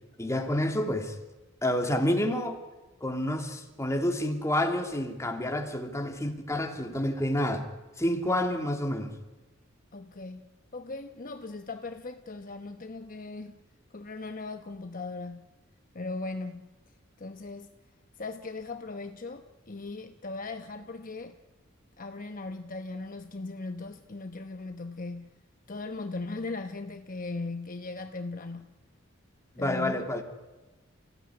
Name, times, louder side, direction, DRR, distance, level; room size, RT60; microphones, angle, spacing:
voice 1, 0.2-1.1 1.6-2.6 3.0-7.7 8.0-9.1 29.6-30.2, left 1 dB, 15° left, 2.8 m, -29 dB
voice 2, 9.9-13.6 13.9-15.6 15.9-16.8 17.2-17.7 18.2-21.4 22.0-25.4 25.7-28.8 29.6-30.2, left 3 dB, 45° left, 1.0 m, -38 dB
29.5 x 16.5 x 9.8 m
head